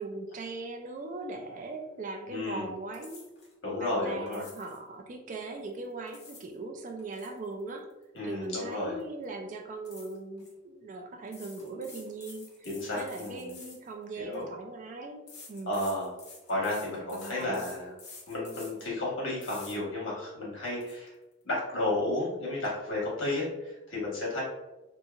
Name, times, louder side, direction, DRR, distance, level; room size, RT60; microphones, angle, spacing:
voice 1, 0.0-3.2 3.8-7.9 8.2-12.5 12.9-15.7 17.2-17.7, right 3 dB, 40° right, 4 dB, 0.3 m, -39 dB
voice 2, 2.3-2.7 3.6-4.4 8.1-9.0 12.6-13.6 14.1-14.4 15.7-16.1 16.5-17.9 18.3-21.1 21.4-24.4, left 2 dB, 75° left, -5 dB, 1.2 m, -32 dB
sound 1, 2.9-3.5 4.3-4.8 5.8-6.5 6.9-8.7 9.0-9.2 9.9-10.5 11.3-14.4 15.3-18.9 19.4-19.8 20.2-20.3 20.7-21.0, left 4 dB, 55° left, 0.8 m, -50 dB
2.8 x 2.5 x 2.3 m, 1.0 s
head